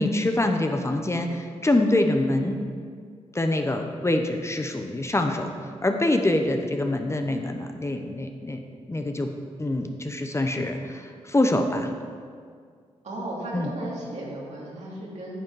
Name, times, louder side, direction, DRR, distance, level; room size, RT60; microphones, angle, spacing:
voice 1, 0.0-2.6 3.3-5.5 5.8-8.6 8.9-9.3 9.6-11.9 13.5-13.7, left 1 dB, 25° left, 5 dB, 0.8 m, -25 dB
voice 2, 13.0-15.4, right 1 dB, 70° right, -5 dB, 2.7 m, -35 dB
9.1 x 7.5 x 4.8 m, 2.1 s
cardioid pair, 60°, 12 cm